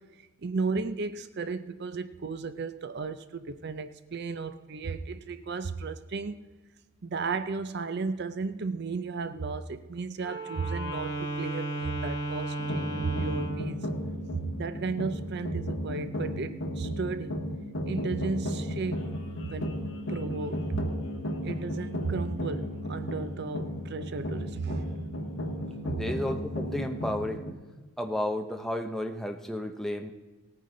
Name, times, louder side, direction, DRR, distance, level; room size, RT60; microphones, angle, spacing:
voice 1, 0.4-6.5 7.0-13.8 14.3-17.4 17.9-19.1 19.4-19.8 20.1-20.8 21.4-24.9, right 4 dB, 50° right, 11 dB, 0.5 m, -34 dB
Wind instrument woodwind instrument, 10.2-13.7, right 2 dB, 75° left, 2.8 m, -34 dB
sound 1, 12.6-27.5, equal, 60° left, 1.4 m, -34 dB
voice 2, 25.8-27.4 28.0-30.1, left 1 dB, ahead, 5 dB, 0.7 m, -32 dB
18.0 x 9.2 x 3.8 m, 1.3 s
head